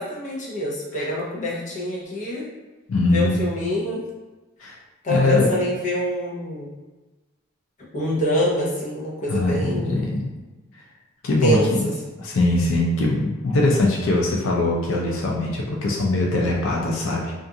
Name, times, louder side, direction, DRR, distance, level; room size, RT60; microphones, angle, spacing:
voice 1, 0.0-2.5 3.1-4.0 5.0-6.7 7.9-10.1 11.4-11.9, equal, 35° left, -5 dB, 0.6 m, -25 dB
voice 2, 2.9-3.4 4.6-4.8 5.1-5.5 9.3-10.3 11.2-11.9 12.2-17.3, left 2 dB, 80° left, -2 dB, 0.4 m, -22 dB
2.5 x 2.3 x 2.7 m, 1.2 s
head